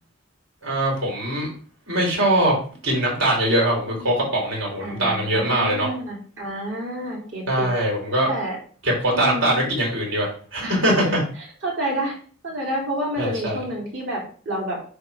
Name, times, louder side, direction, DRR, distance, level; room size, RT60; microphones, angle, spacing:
voice 1, 0.6-1.5 1.9-2.5 2.8-5.9 7.5-8.3 8.8-11.2 13.2-13.6, right 1 dB, 85° right, -2 dB, 3.6 m, -22 dB
voice 2, 4.8-7.7 8.3-8.6 9.1-9.7 10.6-10.7 11.6-12.2 12.4-14.8, right 1 dB, 70° right, -2 dB, 2.9 m, -29 dB
9.9 x 3.4 x 3.6 m, 0.42 s
head